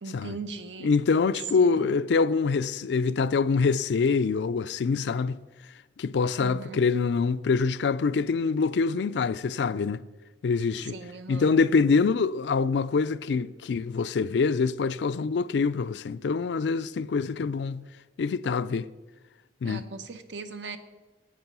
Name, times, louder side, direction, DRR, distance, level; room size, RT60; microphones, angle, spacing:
voice 1, 0.0-0.9 1.6-1.9 6.4-6.8 10.9-11.5 19.6-20.8, right 4 dB, 85° right, 0.9 m, -39 dB
voice 2, 0.8-5.4 6.0-10.0 10.4-10.9 11.3-17.8 18.2-18.9 19.6-19.8, left 4 dB, 70° left, 0.4 m, -25 dB
10.5 x 8.3 x 5.5 m
head